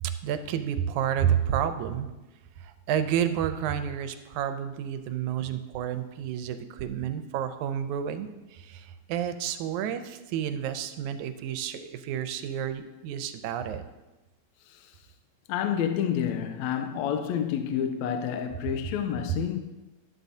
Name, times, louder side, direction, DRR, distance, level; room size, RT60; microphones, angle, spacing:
voice 1, 0.0-2.1 2.6-13.8, right 9 dB, 80° right, 2.0 m, -30 dB
voice 2, 15.5-19.6, left 9 dB, 80° left, 1.8 m, -29 dB
12.0 x 11.0 x 2.7 m
omnidirectional pair, 3.4 m